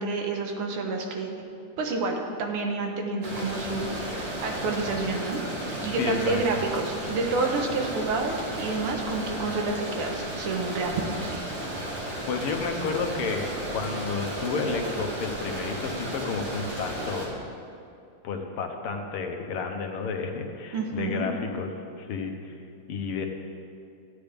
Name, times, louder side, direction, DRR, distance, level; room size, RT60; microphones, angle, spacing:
voice 1, 0.0-1.5 1.8-5.4 5.8-11.3 20.7-21.3, right 3 dB, 85° right, 2 dB, 2.0 m, -29 dB
sound 1, 3.2-17.3, right 1 dB, 55° right, 2.6 m, -34 dB
voice 2, 6.0-6.4 12.2-17.3 18.2-21.7 22.0-22.6 22.9-23.3, left 4 dB, 85° left, 3 dB, 1.9 m, -31 dB
14.0 x 9.6 x 3.5 m, 2.5 s
omnidirectional pair, 2.4 m